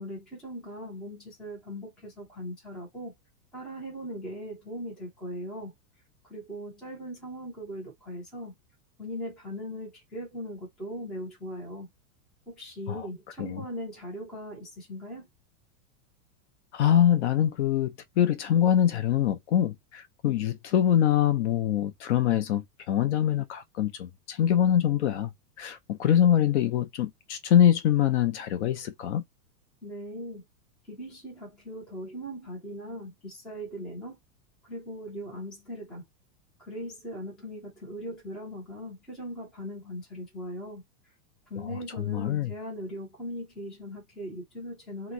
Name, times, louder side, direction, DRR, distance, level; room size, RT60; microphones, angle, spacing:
voice 1, 0.0-3.1 3.5-5.7 6.2-8.5 9.0-11.9 12.5-15.3 29.8-30.4 30.9-34.2 34.6-36.0 36.6-40.8 41.5-45.1, equal, ahead, 0.4 m, -39 dB
voice 2, 16.7-25.3 25.6-29.2 42.0-42.5, left 10 dB, 45° left, 0.6 m, -24 dB
2.8 x 2.1 x 3.6 m
supercardioid pair, 170°, 47 cm